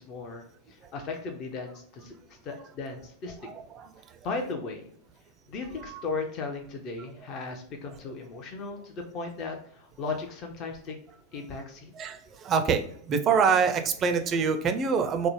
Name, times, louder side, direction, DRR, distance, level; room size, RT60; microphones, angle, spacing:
voice 1, 0.0-2.1 2.4-3.4 4.2-4.9 5.5-11.0 11.3-11.9, left 4 dB, 35° left, 4 dB, 0.5 m, -36 dB
voice 2, 3.5-3.9 12.0-12.8 13.1-15.3, right 6 dB, 30° right, 7 dB, 0.4 m, -25 dB
3.3 x 2.0 x 3.0 m, 0.63 s
figure-of-eight pair, 90°, 0 cm